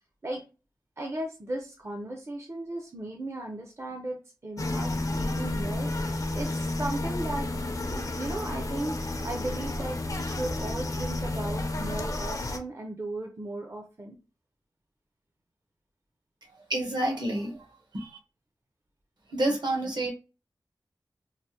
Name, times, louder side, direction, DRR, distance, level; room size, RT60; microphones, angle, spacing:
voice 1, 1.0-7.5 7.8-14.2, right 1 dB, 35° right, 2 dB, 0.6 m, -36 dB
sound 1, 4.6-12.6, left 2 dB, 45° left, 0.5 m, -31 dB
voice 2, 16.7-17.7 17.9-18.2 19.3-20.1, right 1 dB, 60° right, 2 dB, 1.0 m, -29 dB
3.2 x 2.0 x 2.8 m, 0.32 s
wide cardioid pair, 60°, 8 cm